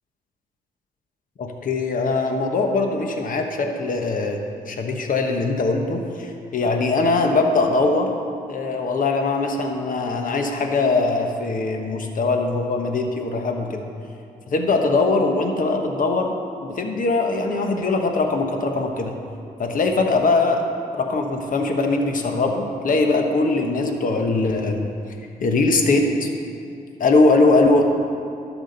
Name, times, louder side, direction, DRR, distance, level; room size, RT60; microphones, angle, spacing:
voice 1, 1.4-4.4 4.7-8.1 8.5-13.8 14.5-19.1 19.6-20.6 20.9-24.9 25.4-26.3 27.0-27.8, left 3 dB, 65° left, 3 dB, 1.1 m, -21 dB
11.5 x 5.0 x 6.7 m, 2.5 s
cardioid pair, 55°, 15 cm